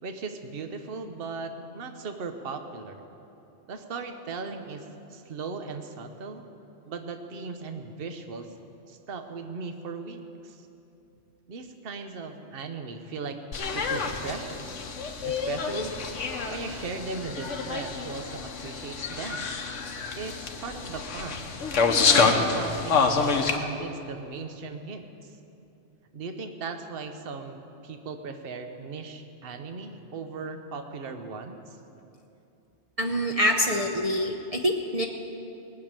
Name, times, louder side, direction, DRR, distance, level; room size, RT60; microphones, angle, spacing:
voice 1, 0.0-3.0 3.7-6.4 6.9-8.5 8.9-10.7 11.5-13.4 13.6-14.7 15.2-16.0 16.5-19.5 20.2-21.5 22.1-25.4 26.1-31.6, right 4 dB, 55° right, 7 dB, 1.1 m, -38 dB
sound 1, 13.5-23.6, left 4 dB, 80° left, 1.4 m, -27 dB
voice 2, 33.0-35.1, equal, 35° right, 1 dB, 0.8 m, -25 dB
19.0 x 6.9 x 8.9 m, 2.8 s
omnidirectional pair, 1.2 m